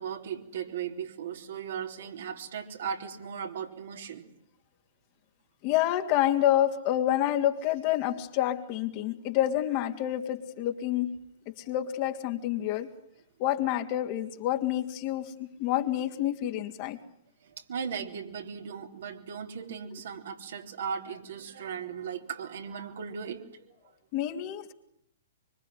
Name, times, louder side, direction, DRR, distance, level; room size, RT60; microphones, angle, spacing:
voice 1, 0.0-4.2 17.4-23.7, right 7 dB, 60° right, 4 dB, 4.0 m, -37 dB
voice 2, 5.6-11.2 11.5-12.9 13.4-17.0 24.1-24.7, left 12 dB, 40° left, 5 dB, 2.9 m, -28 dB
25.0 x 25.0 x 9.4 m, 0.73 s
figure-of-eight pair, 115°, 0 cm